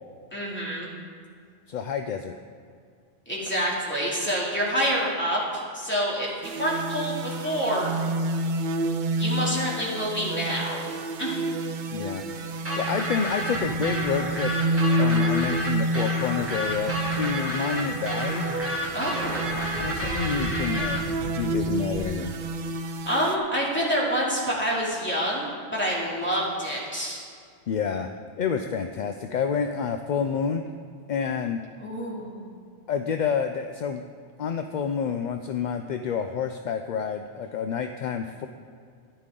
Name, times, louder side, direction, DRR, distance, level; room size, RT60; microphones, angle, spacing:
voice 1, 0.3-0.9 3.3-7.9 9.2-10.9 11.2-11.4 18.9-19.6 23.1-27.2 31.8-32.5, equal, 10° left, -6 dB, 2.7 m, -27 dB
voice 2, 1.7-2.4 11.9-14.5 15.0-18.5 19.5-21.0 21.3-22.3 27.7-28.1 28.4-30.6 31.1-31.6 32.9-34.0 34.4-38.5, left 6 dB, 55° left, 6 dB, 0.5 m, -29 dB
sound 1, 6.4-23.4, right 1 dB, 55° right, 0.6 m, -29 dB
Thunder, 12.3-22.0, right 1 dB, 35° right, 2.7 m, -42 dB
sound 2, 12.7-21.0, right 1 dB, 10° right, 1.8 m, -31 dB
13.5 x 10.5 x 3.8 m, 2.2 s
omnidirectional pair, 1.1 m